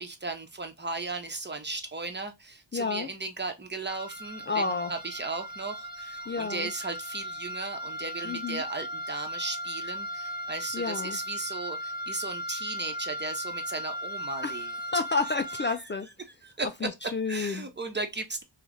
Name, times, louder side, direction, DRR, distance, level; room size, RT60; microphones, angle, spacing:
voice 1, 0.0-4.6 4.9-14.7 15.8-15.9 16.4-16.9 17.3-18.4, right 3 dB, 25° right, 1.0 m, -36 dB
voice 2, 2.7-3.1 4.5-4.9 6.3-6.7 8.2-8.6 10.7-11.2 14.4-14.6 14.9-16.1 16.8-17.7, left 4 dB, 25° left, 0.3 m, -30 dB
sound 1, 3.9-15.7, equal, 45° right, 1.0 m, -37 dB
3.2 x 2.4 x 3.8 m
cardioid pair, 70°, 45 cm